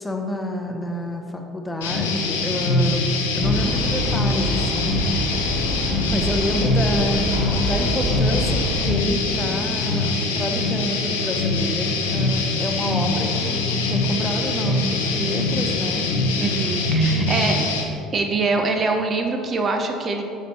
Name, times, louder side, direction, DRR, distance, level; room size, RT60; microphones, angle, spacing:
voice 1, 0.0-3.0 3.4-4.9 6.1-16.1 17.0-17.7, equal, 15° left, 3 dB, 0.9 m, -28 dB
sound 1, 1.8-17.8, left 2 dB, 75° left, 0.8 m, -23 dB
sound 2, 3.4-8.8, equal, 85° right, 1.7 m, -27 dB
voice 2, 16.4-17.6 18.1-20.2, right 3 dB, 40° right, 3 dB, 0.8 m, -23 dB
6.8 x 6.0 x 4.3 m, 2.7 s
figure-of-eight pair, 60°, 0 cm